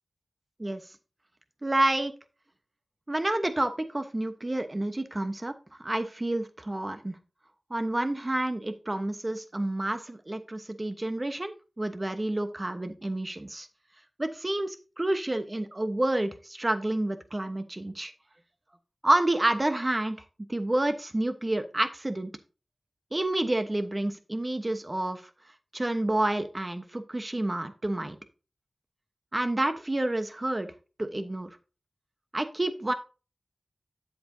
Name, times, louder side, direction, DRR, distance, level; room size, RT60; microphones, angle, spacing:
voice 1, 1.6-2.1 3.1-5.5 5.8-7.2 7.7-13.7 14.2-18.1 19.0-20.2 20.5-22.3 23.1-25.2 25.7-28.2 29.3-30.7 31.0-31.5 32.3-32.9, right 1 dB, 30° right, 8 dB, 1.0 m, -29 dB
9.2 x 7.6 x 2.7 m, 0.33 s
wide cardioid pair, 55°, 0 cm